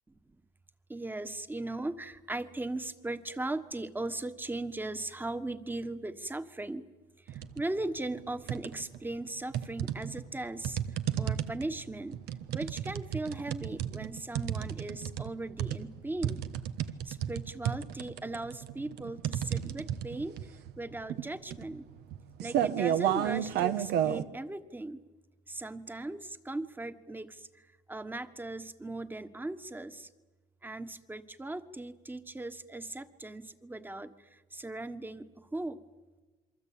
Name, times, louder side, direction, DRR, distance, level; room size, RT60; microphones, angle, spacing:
voice 1, 0.9-6.9 7.3-10.8 11.2-12.2 12.5-16.4 17.0-20.4 20.8-21.8 22.4-25.0 25.5-27.5 27.9-30.1 30.6-35.8, right 2 dB, 10° right, 11 dB, 1.5 m, -38 dB
sound 1, 7.3-7.7 8.1-9.0 9.5-24.2, right 10 dB, 75° right, 1.4 m, -32 dB
27.5 x 23.5 x 8.7 m, 1.2 s
cardioid pair, 110°, 17 cm